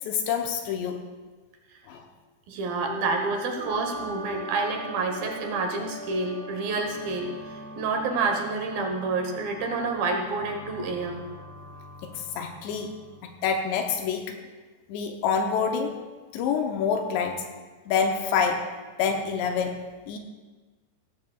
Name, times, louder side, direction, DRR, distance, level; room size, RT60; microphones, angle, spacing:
voice 1, 0.1-1.0 1.9-2.0 12.0-12.9 13.2-14.4 14.9-16.0 16.3-17.5 17.9-18.7 19.0-20.2, left 6 dB, 80° left, 4 dB, 2.9 m, -27 dB
voice 2, 2.5-11.2, right 3 dB, 65° right, 3 dB, 2.5 m, -29 dB
sound 1, 2.8-13.8, right 1 dB, 85° right, 6.6 m, -41 dB
18.0 x 15.0 x 2.4 m, 1.3 s
omnidirectional pair, 5.3 m